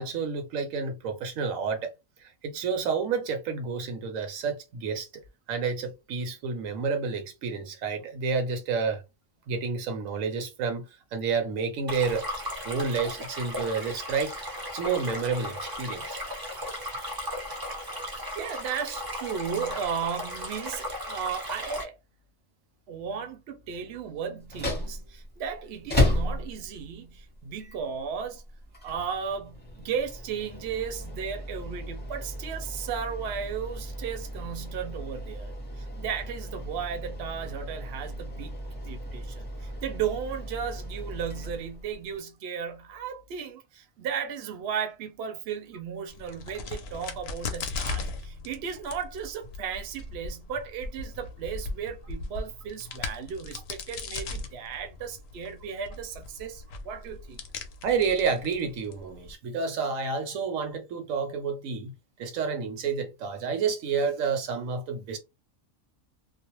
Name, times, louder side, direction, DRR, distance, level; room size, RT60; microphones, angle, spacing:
voice 1, 0.0-1.9 2.2-5.1 5.5-9.0 9.5-10.9 11.1-12.2 12.6-14.4 14.7-16.2 57.8-61.9 62.2-65.2, right 5 dB, 85° right, 1.1 m, -29 dB
Stream, 11.9-21.8, equal, 30° right, 0.4 m, -36 dB
voice 2, 18.0-22.0 22.9-28.4 28.8-57.4, right 7 dB, 60° right, 0.8 m, -35 dB
sound 1, 24.4-42.2, left 1 dB, 10° left, 0.7 m, -34 dB
Crack, 46.1-59.3, left 3 dB, 60° left, 0.7 m, -38 dB
2.5 x 2.1 x 2.9 m
omnidirectional pair, 1.3 m